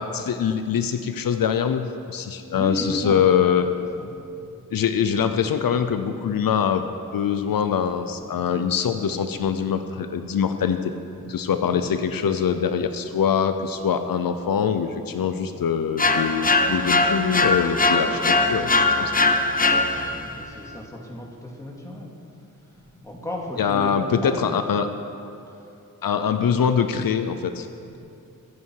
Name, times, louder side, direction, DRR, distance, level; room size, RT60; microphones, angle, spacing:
voice 1, 0.0-3.7 4.7-6.9 7.1-10.9 11.3-18.1 18.4-19.2 23.6-24.9 26.0-27.7, left 7 dB, 85° left, 8 dB, 0.7 m, -23 dB
voice 2, 2.5-3.2 4.0-4.1 4.4-4.7 8.2-8.5 11.5-11.8 15.2-15.3 18.0-18.3 19.7-24.7 25.5-25.8 27.9-28.0, left 1 dB, 10° left, -2 dB, 2.5 m, -36 dB
sound 1, 16.0-20.3, left 3 dB, 25° left, 0.8 m, -21 dB
23.5 x 8.7 x 4.8 m, 2.6 s
wide cardioid pair, 105°, 34 cm